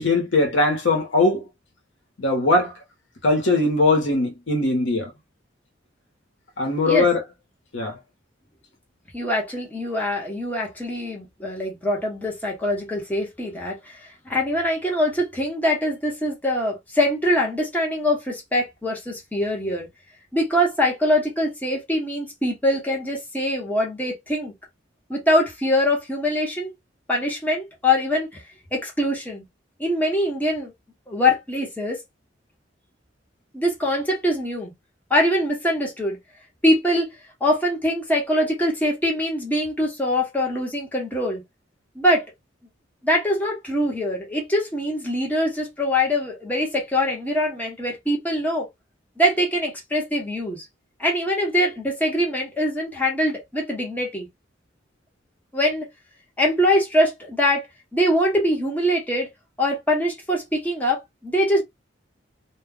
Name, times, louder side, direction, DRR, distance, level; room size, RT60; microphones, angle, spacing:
voice 1, 0.0-1.4 2.2-2.7 3.2-5.1 6.6-7.2 7.7-8.0, left 2 dB, 75° left, 1.0 m, -20 dB
voice 2, 9.1-19.9 20.3-24.5 25.1-26.7 27.1-28.4 28.7-29.4 29.8-30.7 31.1-32.0 33.5-34.7 35.1-36.2 36.6-37.2 37.4-41.4 41.9-42.2 43.0-48.7 49.2-50.7 51.0-54.3 55.5-55.9 56.4-57.7 57.9-59.3 59.6-61.6, left 1 dB, 10° left, 0.9 m, -23 dB
2.2 x 2.2 x 3.6 m
head